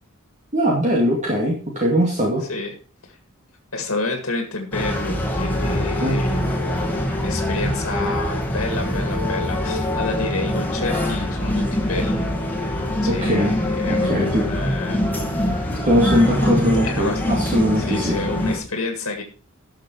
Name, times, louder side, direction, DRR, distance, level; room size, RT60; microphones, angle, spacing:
voice 1, 0.5-2.4 6.0-6.2 13.2-13.5 13.9-14.4 15.9-18.2, equal, 35° right, -2 dB, 2.4 m, -20 dB
voice 2, 3.7-12.3 13.0-15.0 15.5-15.7 16.8-17.3 17.8-19.2, left 3 dB, 85° left, 4 dB, 2.1 m, -29 dB
sound 1, 4.7-18.6, left 1 dB, 10° left, 2.1 m, -23 dB
13.0 x 6.6 x 4.7 m, 0.37 s
head